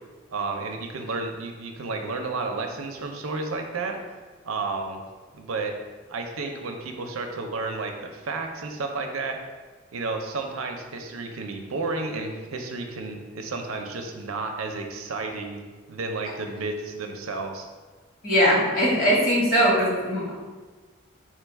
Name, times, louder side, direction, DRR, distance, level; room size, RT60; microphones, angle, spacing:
voice 1, 0.3-4.0 4.4-5.0 5.3-5.7 6.1-9.4 9.9-15.6 15.9-17.7, right 3 dB, 85° right, 4 dB, 0.5 m, -32 dB
voice 2, 18.2-20.3, equal, 45° left, -5 dB, 1.3 m, -21 dB
4.6 x 2.3 x 4.5 m, 1.4 s
head